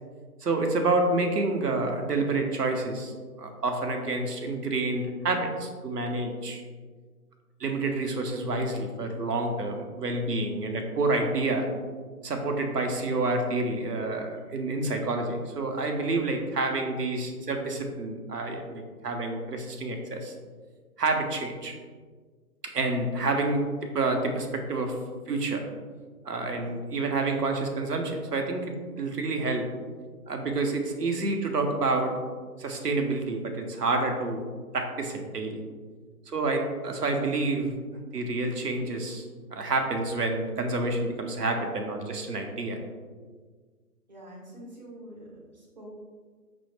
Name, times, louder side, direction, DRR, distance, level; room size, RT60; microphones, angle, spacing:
voice 1, 0.4-3.1 3.4-6.6 7.6-11.7 12.2-20.3 21.0-21.7 22.7-24.9 25.3-25.6 26.2-29.7 30.3-32.1 32.6-34.4 34.7-35.6 36.3-37.7 38.1-39.3 39.5-42.8, right 2 dB, 85° right, 3 dB, 0.9 m, -28 dB
voice 2, 44.1-45.9, right 1 dB, 30° right, -5 dB, 0.8 m, -46 dB
6.0 x 2.1 x 3.1 m, 1.5 s
hypercardioid pair, 165°, 46 cm